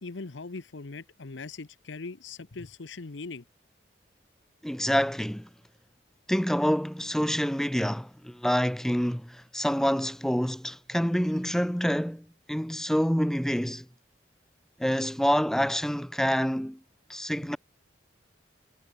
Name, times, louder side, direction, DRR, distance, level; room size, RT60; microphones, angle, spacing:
voice 1, 0.0-3.4, left 3 dB, 80° left, 0.9 m, -40 dB
voice 2, 4.6-5.5 6.3-13.9 14.8-16.8 17.1-17.6, equal, ahead, 0.8 m, -27 dB
head